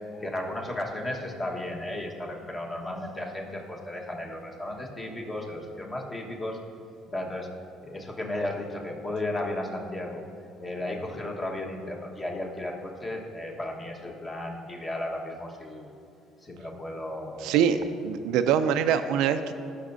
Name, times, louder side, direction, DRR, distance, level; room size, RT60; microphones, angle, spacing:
voice 1, 0.1-6.6 7.1-7.5 7.8-10.2 10.6-15.9 16.4-17.5 17.8-17.9, left 1 dB, 25° left, 0 dB, 1.3 m, -34 dB
voice 2, 17.4-19.5, right 8 dB, 80° right, 10 dB, 0.3 m, -24 dB
15.0 x 5.9 x 2.7 m, 2.6 s
cardioid pair, 100°, 0 cm